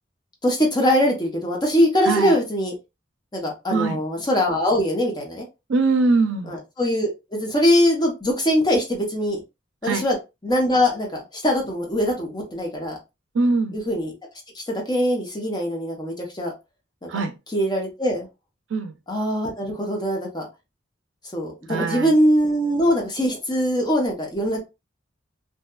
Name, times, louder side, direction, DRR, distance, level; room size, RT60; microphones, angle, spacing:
voice 1, 0.4-2.7 3.3-5.4 6.5-9.4 9.8-10.2 10.4-13.0 13.7-14.1 14.5-16.5 17.0-17.1 17.5-18.3 19.1-20.5 21.3-24.6, equal, 20° left, 0.7 m, -22 dB
voice 2, 3.7-4.0 5.7-6.6 9.8-10.0 13.3-13.8 17.1-17.3 18.7-18.9 21.7-22.1, right 3 dB, 80° right, 0.4 m, -22 dB
2.7 x 2.2 x 2.2 m
head